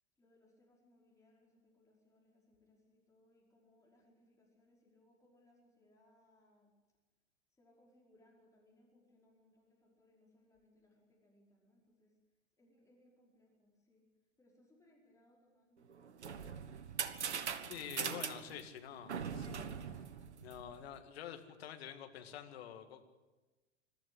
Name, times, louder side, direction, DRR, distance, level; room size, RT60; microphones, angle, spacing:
voice 1, 0.2-6.7 7.5-12.1 12.6-14.0 14.4-16.8 17.4-17.7, left 1 dB, 10° left, -3 dB, 5.2 m, -69 dB
sound 1, 15.9-20.9, right 7 dB, 65° right, 1.3 m, -41 dB
voice 2, 17.7-19.6 19.9-20.0 20.4-23.0, left 9 dB, 55° left, 7 dB, 2.1 m, -48 dB
22.0 x 13.0 x 9.9 m, 1.2 s
figure-of-eight pair, 95°, 36 cm